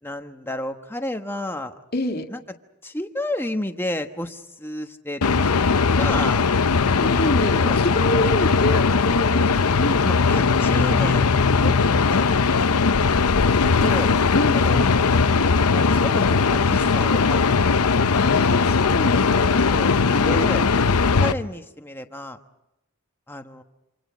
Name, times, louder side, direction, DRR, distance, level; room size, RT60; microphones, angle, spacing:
voice 1, 0.0-1.8 2.3-2.4 2.8-6.5 10.0-11.8 12.0-12.3 12.5-12.7 12.9-14.1 14.5-17.9 19.7-20.7 21.2-22.4 23.3-23.6, left 1 dB, 10° left, 6 dB, 1.2 m, -32 dB
voice 2, 1.9-2.3 6.9-10.0 14.3-14.8 18.1-19.7 20.1-20.8, left 1 dB, 45° left, 1 dB, 2.1 m, -27 dB
sound 1, 5.2-21.3, left 4 dB, 85° left, 0.8 m, -19 dB
28.0 x 27.0 x 5.2 m, 0.92 s
head